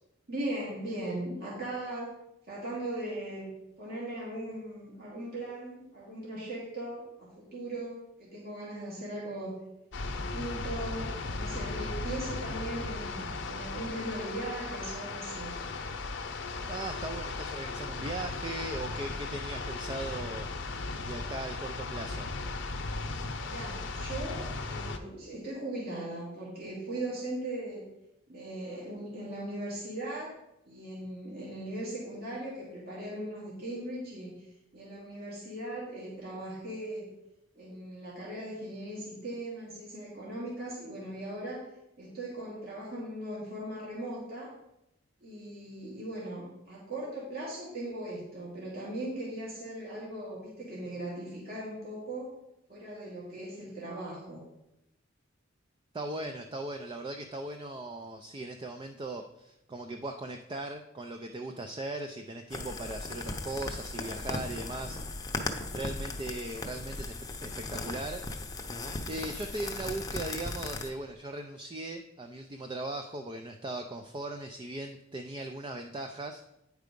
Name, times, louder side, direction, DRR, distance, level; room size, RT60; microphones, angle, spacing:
voice 1, 0.3-2.1 2.5-3.5 3.8-9.6 10.1-11.1 11.4-15.6 23.4-27.8 28.3-30.3 30.7-37.1 37.5-41.6 42.0-44.5 45.2-52.3 52.7-54.4, right 1 dB, 55° right, -6 dB, 2.2 m, -39 dB
sound 1, 9.9-25.0, left 3 dB, 65° left, 0.7 m, -36 dB
voice 2, 16.7-22.3 55.9-65.0 65.7-67.1 67.4-68.4 69.1-76.5, right 2 dB, 25° right, 5 dB, 0.4 m, -39 dB
sound 2, 62.5-70.9, left 2 dB, 20° left, 0.7 m, -37 dB
9.3 x 4.7 x 5.2 m, 0.87 s
head